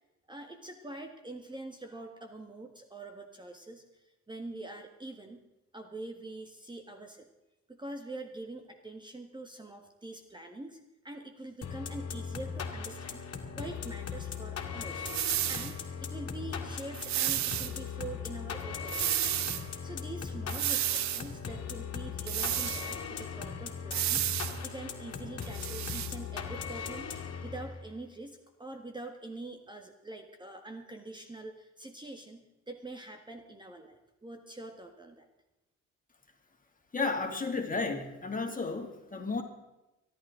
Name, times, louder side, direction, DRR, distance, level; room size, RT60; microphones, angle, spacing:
voice 1, 0.3-5.4 5.7-7.3 7.7-10.8 11.0-13.2 13.6-15.1 15.5-19.2 19.8-24.3 24.6-27.1 27.4-35.3, right 2 dB, 15° right, 5 dB, 1.5 m, -44 dB
sound 1, 11.6-27.9, left 6 dB, 55° left, 2.3 m, -39 dB
sound 2, 15.1-15.7 16.9-17.7 18.9-19.6 20.5-21.3 22.3-22.9 23.9-24.6 25.4-26.1, right 13 dB, 65° right, 0.6 m, -31 dB
voice 2, 36.9-39.4, left 3 dB, 25° left, 3 dB, 2.5 m, -33 dB
25.0 x 11.0 x 3.8 m, 0.98 s
cardioid pair, 90°, 30 cm